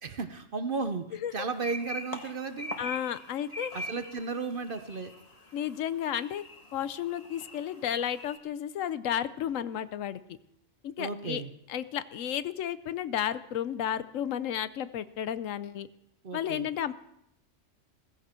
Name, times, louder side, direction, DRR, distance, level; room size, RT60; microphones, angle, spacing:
voice 1, 0.0-2.7 3.7-5.1 11.0-11.5 16.2-16.7, right 4 dB, 50° right, 9 dB, 0.9 m, -34 dB
sound 1, 1.5-8.4, left 1 dB, 30° left, 1.6 m, -42 dB
voice 2, 2.8-3.7 5.5-6.4 6.7-10.2 10.8-11.4 11.7-15.9 16.3-16.9, left 10 dB, 85° left, 14 dB, 1.1 m, -32 dB
16.0 x 15.5 x 4.4 m, 0.78 s
omnidirectional pair, 1.3 m